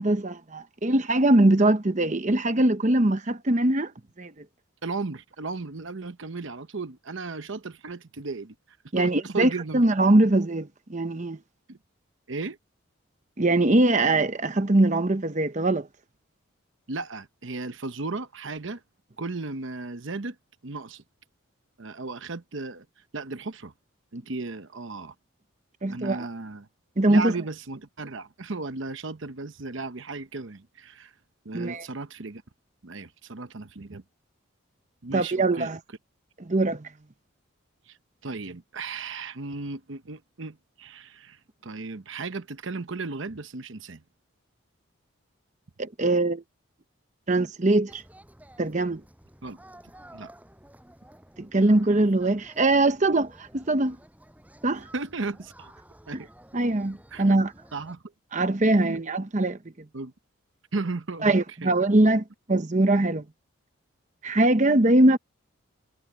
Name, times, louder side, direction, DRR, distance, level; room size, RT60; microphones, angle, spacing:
voice 1, 0.0-3.9 4.2-4.3 8.9-11.4 13.4-15.9 25.8-26.3 27.0-27.3 31.5-31.8 35.1-35.8 36.4-36.9 45.8-46.4 47.3-48.0 48.6-49.0 51.4-54.0 54.6-54.9 56.5-57.5 58.3-59.6 61.2-63.2 64.2-65.2, right 2 dB, 35° right, 0.9 m, -22 dB
voice 2, 4.8-8.5 9.0-9.8 11.7-11.8 12.3-12.6 16.9-18.8 19.2-20.4 20.6-21.0 21.8-22.9 23.1-23.7 24.1-25.1 25.9-26.7 27.1-31.1 31.4-32.4 32.8-34.0 35.0-35.7 37.9-38.0 38.2-44.0 49.4-49.6 50.1-50.3 54.9-55.7 56.1-56.3 57.1-57.4 57.7-58.0 58.8-59.0 59.9-60.1 60.7-61.7, right 3 dB, 60° right, 0.9 m, -35 dB
sound 1, 47.9-57.9, right 1 dB, 5° right, 5.9 m, -52 dB
head